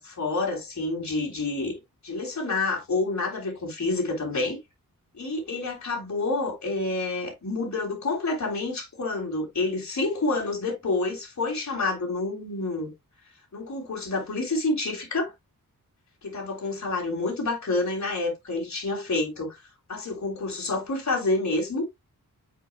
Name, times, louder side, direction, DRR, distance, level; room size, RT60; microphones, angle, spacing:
voice 1, 0.0-1.7 2.0-4.6 5.1-12.9 13.5-15.3 16.2-19.6 19.9-21.9, left 3 dB, 55° left, 3.6 m, -28 dB
8.4 x 4.9 x 2.3 m
wide cardioid pair, 135°, 34 cm